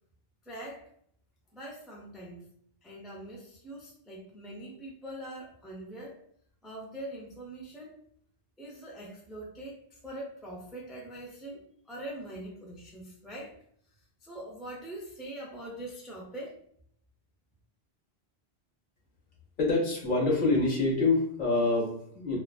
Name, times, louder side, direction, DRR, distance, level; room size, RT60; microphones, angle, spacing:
voice 1, 0.4-0.9 1.5-2.5 2.8-6.2 6.6-8.0 8.6-13.6 14.2-16.6, right 1 dB, ahead, -3 dB, 0.3 m, -43 dB
voice 2, 19.6-22.4, left 3 dB, 55° left, -3 dB, 0.9 m, -26 dB
2.4 x 2.3 x 2.2 m, 0.65 s
omnidirectional pair, 1.1 m